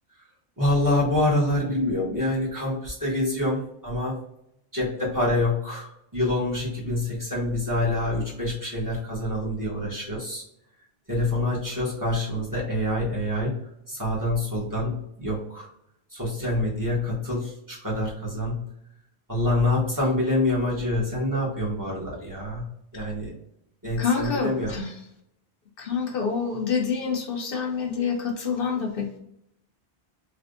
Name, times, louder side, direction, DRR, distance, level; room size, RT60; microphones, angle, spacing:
voice 1, 0.6-4.1 4.7-10.4 11.1-13.6 13.9-15.7 16.1-18.6 19.3-22.7 22.9-23.3 23.8-24.8, left 1 dB, 20° right, -6 dB, 1.1 m, -26 dB
voice 2, 24.0-24.9 25.8-29.2, left 6 dB, 65° left, 2 dB, 0.8 m, -27 dB
3.3 x 2.8 x 2.5 m, 0.78 s
omnidirectional pair, 1.1 m